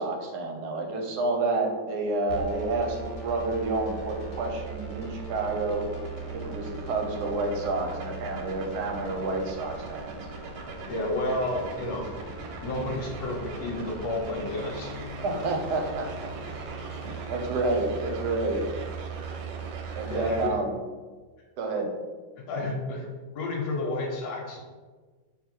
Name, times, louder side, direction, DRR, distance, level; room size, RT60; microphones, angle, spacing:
voice 1, 0.0-5.9 6.3-10.2 15.2-16.3 17.0-18.6 19.9-20.8 21.6-21.9, right 2 dB, 70° right, 2 dB, 1.1 m, -29 dB
sound 1, 2.3-20.5, right 4 dB, 90° right, 1.4 m, -38 dB
sound 2, 2.5-17.2, left 1 dB, 60° left, 1.1 m, -48 dB
voice 2, 10.9-12.1 12.6-14.9 20.1-20.6 22.5-23.0 23.3-24.6, left 2 dB, 80° left, 0 dB, 1.5 m, -30 dB
Bass guitar, 14.4-20.7, left 7 dB, 40° right, 0.9 m, -47 dB
3.8 x 2.6 x 4.3 m, 1.4 s
omnidirectional pair, 2.1 m